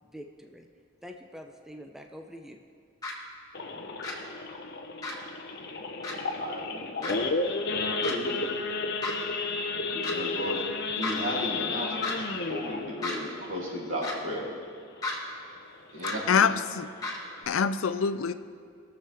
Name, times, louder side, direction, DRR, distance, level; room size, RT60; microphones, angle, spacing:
voice 1, 0.0-0.7 1.0-2.6, equal, ahead, 3 dB, 0.4 m, -45 dB
sound 1, 3.0-3.1 4.0-4.1 5.0-5.2 6.0-6.1 7.0-7.1 8.0-8.1 9.0-9.2 10.0-10.1 11.0-11.2 12.0-12.1 13.0-13.2 14.0-14.2 15.0-15.2 16.0-16.2 17.0-17.2, left 3 dB, 20° left, 1.7 m, -33 dB
Idling / Accelerating revving vroom / Sawing, 3.5-14.6 15.0-15.2 15.5-15.6 16.1-16.3 16.8-16.9 17.1-17.4, left 3 dB, 55° left, 0.8 m, -32 dB
voice 2, 6.1-7.1 7.7-8.3 9.9-10.7 10.9-14.5 15.9-16.5, equal, 75° right, -5 dB, 2.7 m, -35 dB
voice 3, 16.3-16.9 17.5-18.3, left 6 dB, 80° left, 13 dB, 0.4 m, -25 dB
21.0 x 7.1 x 3.4 m, 2.2 s
head